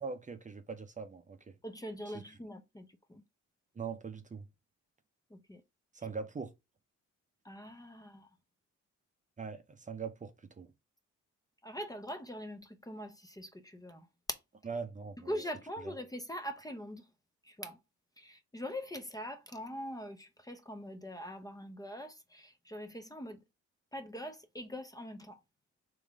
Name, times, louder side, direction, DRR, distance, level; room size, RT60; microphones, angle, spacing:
voice 1, 0.0-1.5 3.8-4.5 5.9-6.5 9.4-10.7 14.7-15.3, right 5 dB, 25° right, 0.7 m, -41 dB
voice 2, 1.6-3.2 5.3-5.6 7.4-8.3 11.6-14.4 15.2-17.1 17.4-17.8 18.2-23.4 23.9-25.4, equal, 10° left, 0.7 m, -43 dB
3.6 x 3.1 x 4.7 m
cardioid pair, 90°, 30 cm